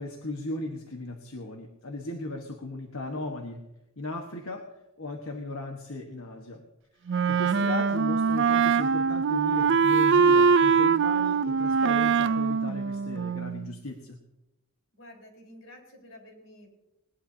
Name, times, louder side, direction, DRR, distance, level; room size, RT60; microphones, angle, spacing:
voice 1, 0.0-3.6 4.0-4.6 5.0-6.6 7.3-14.2, left 2 dB, 90° left, 2 dB, 1.4 m, -36 dB
voice 2, 7.1-7.5 12.1-12.3 15.0-16.7, left 1 dB, 65° left, 0 dB, 4.4 m, -51 dB
Wind instrument woodwind instrument, 7.1-13.7, right 5 dB, 60° right, 0.4 m, -23 dB
20.0 x 19.5 x 2.8 m, 0.94 s
head